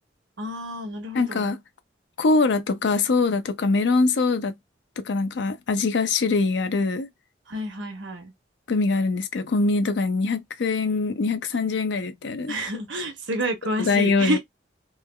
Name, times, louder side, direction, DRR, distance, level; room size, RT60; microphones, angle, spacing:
voice 1, 0.4-1.5 7.5-8.3 12.5-14.4, right 1 dB, 80° right, 1.0 m, -29 dB
voice 2, 1.1-1.6 2.2-4.6 5.0-7.1 8.7-12.6 13.8-14.4, left 3 dB, 65° left, 0.5 m, -23 dB
3.1 x 2.3 x 2.2 m
head